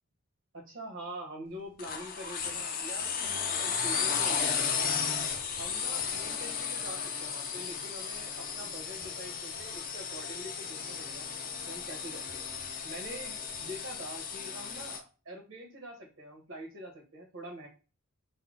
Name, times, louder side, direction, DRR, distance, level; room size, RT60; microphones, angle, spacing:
voice 1, 0.5-5.0 5.6-11.3 11.6-12.4 12.8-17.7, right 1 dB, 60° right, 1 dB, 1.4 m, -45 dB
sound 1, 1.8-15.0, left 6 dB, 40° left, 0.6 m, -34 dB
4.2 x 2.3 x 3.7 m, 0.34 s
head